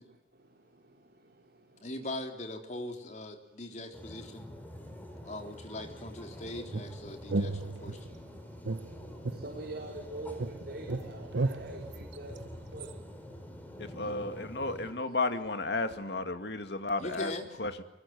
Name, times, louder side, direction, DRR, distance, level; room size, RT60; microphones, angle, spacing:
voice 1, 0.1-2.1 3.7-3.8 4.7-5.5 7.8-7.9 8.3-12.9 14.0-14.2, right 1 dB, 60° right, -1 dB, 4.7 m, -47 dB
voice 2, 1.8-4.5 5.2-8.1 17.0-17.5, left 1 dB, 40° left, 4 dB, 3.8 m, -40 dB
sound 1, 3.9-14.9, equal, 10° left, 4.8 m, -46 dB
sound 2, 6.7-8.2 8.6-10.1 10.4-12.9, right 2 dB, 85° right, 0.9 m, -35 dB
voice 3, 13.8-17.3 17.6-17.8, left 3 dB, 70° left, 8 dB, 2.3 m, -33 dB
24.0 x 22.5 x 9.5 m, 0.91 s
head